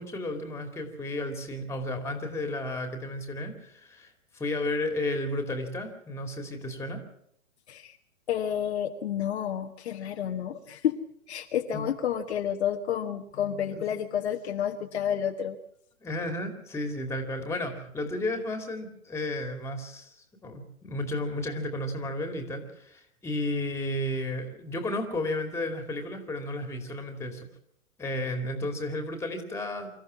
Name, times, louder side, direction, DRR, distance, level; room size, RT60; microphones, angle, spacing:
voice 1, 0.0-7.0 11.7-11.9 13.7-13.8 16.0-20.2 20.4-27.5 28.0-29.9, left 1 dB, 5° left, 6 dB, 2.5 m, -33 dB
voice 2, 8.3-11.0 11.3-15.6, left 9 dB, 50° left, 4 dB, 1.5 m, -30 dB
25.5 x 14.0 x 7.4 m, 0.70 s
figure-of-eight pair, 125°, 42 cm